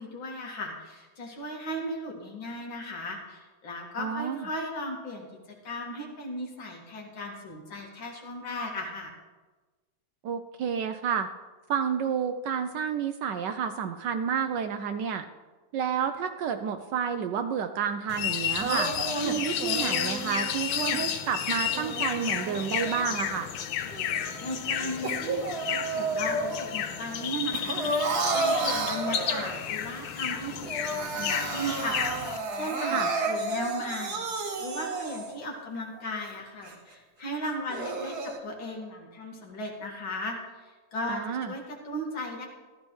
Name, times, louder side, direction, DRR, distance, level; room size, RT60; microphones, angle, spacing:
voice 1, 0.0-5.3 5.6-9.1 24.4-27.9 28.3-42.5, equal, 70° left, 0 dB, 2.7 m, -36 dB
voice 2, 4.0-4.5 10.2-11.3 11.7-15.2 15.7-18.9 19.2-23.5 32.9-33.1 41.1-41.5, right 7 dB, 70° right, 7 dB, 1.1 m, -30 dB
sound 1, 18.1-32.4, left 9 dB, 85° left, 1.6 m, -32 dB
Crying sobbing, 18.6-21.0 21.7-23.4 23.9-26.8 27.1-29.8 30.2-30.3 30.6-35.4 36.0-36.1 36.6-36.7 37.5-38.4, right 3 dB, 55° right, 1.5 m, -32 dB
14.5 x 13.5 x 3.2 m, 1.3 s
omnidirectional pair, 2.3 m